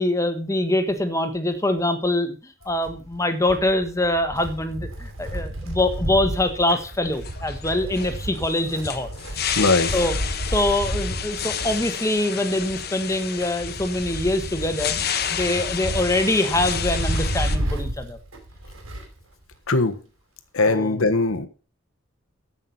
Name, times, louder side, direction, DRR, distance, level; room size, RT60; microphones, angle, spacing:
voice 1, 0.0-9.4 9.9-10.1 10.5-14.9 15.3-18.2 20.7-21.0, left 1 dB, 15° left, 1.4 m, -24 dB
Wind, 2.6-19.2 19.5-19.6 20.6-20.7, right 1 dB, 85° right, 4.9 m, -31 dB
sound 1, 6.4-17.6, left 8 dB, 50° left, 1.1 m, -31 dB
voice 2, 9.5-9.9 19.7-20.0 20.5-21.5, left 3 dB, 85° left, 1.4 m, -20 dB
14.0 x 6.0 x 5.7 m
head